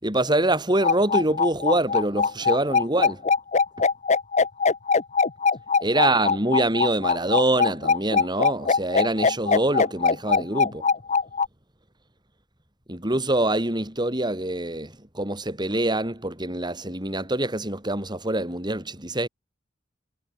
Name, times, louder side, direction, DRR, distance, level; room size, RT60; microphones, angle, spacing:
voice 1, 0.0-3.2 5.8-10.8 12.9-19.3, right 1 dB, 25° right, 6.5 m, -25 dB
sound 1, 0.8-11.5, left 5 dB, 40° left, 0.9 m, -21 dB
head